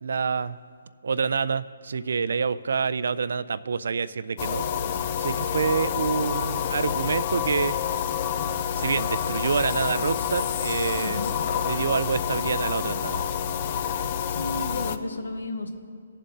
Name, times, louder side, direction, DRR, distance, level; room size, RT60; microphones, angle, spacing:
voice 1, 0.0-0.6 1.0-4.6 5.2-7.8 8.8-11.2 11.6-13.3, right 5 dB, 70° right, 16 dB, 0.3 m, -27 dB
sound 1, 4.4-15.0, left 8 dB, 35° left, 0.4 m, -28 dB
voice 2, 11.0-11.4 13.9-15.7, left 2 dB, 85° left, 6 dB, 1.1 m, -33 dB
18.5 x 7.3 x 2.8 m, 2.3 s
hypercardioid pair, 160°, 0 cm